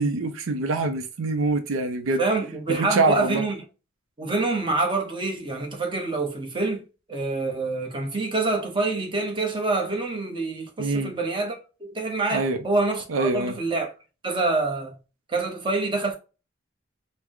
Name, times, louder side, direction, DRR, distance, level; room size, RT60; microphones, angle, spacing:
voice 1, 0.0-2.2 2.7-3.4 10.8-11.1 12.3-12.6 13.1-13.5, right 3 dB, 80° right, 0.5 m, -24 dB
voice 2, 2.2-3.6 4.2-13.9 14.2-14.9 15.3-16.2, right 3 dB, 25° right, 1.0 m, -26 dB
4.6 x 2.1 x 3.7 m
head